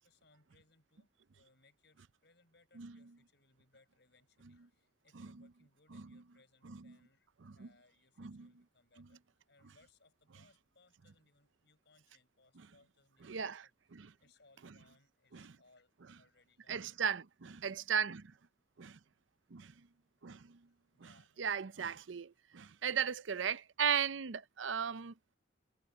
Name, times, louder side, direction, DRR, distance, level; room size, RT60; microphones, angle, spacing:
voice 1, 0.0-17.0 20.7-21.8, left 3 dB, 65° left, 5.8 m, -70 dB
voice 2, 8.2-8.5 13.3-13.6 14.0-14.1 15.3-15.5 16.7-18.3 18.8-19.0 19.5-19.7 20.2-20.6 21.4-25.1, right 7 dB, 85° right, 0.6 m, -36 dB
head